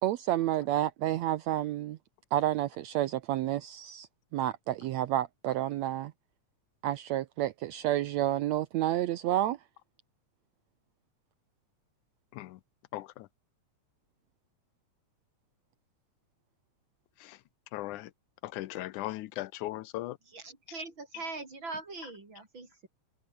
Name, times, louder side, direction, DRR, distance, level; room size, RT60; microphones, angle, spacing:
voice 1, 0.0-2.0 2.3-4.1 4.3-6.1 6.8-9.6, right 13 dB, 75° right, 1.9 m, -30 dB
voice 2, 12.9-13.3 17.2-17.4 17.7-18.1 18.4-20.2, left 16 dB, 85° left, 2.3 m, -38 dB
voice 3, 20.3-22.9, right 3 dB, 40° right, 5.8 m, -42 dB
omnidirectional pair, 3.4 m